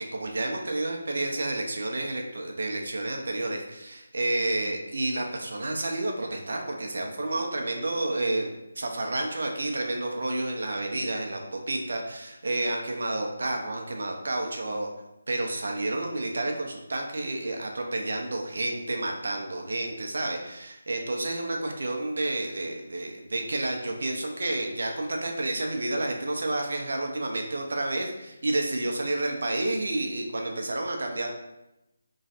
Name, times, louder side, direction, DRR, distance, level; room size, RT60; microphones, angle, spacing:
voice 1, 0.0-8.5 8.8-14.9 15.3-31.3, right 2 dB, 70° right, 2 dB, 0.7 m, -30 dB
3.1 x 2.3 x 4.2 m, 0.93 s
figure-of-eight pair, 160°, 0 cm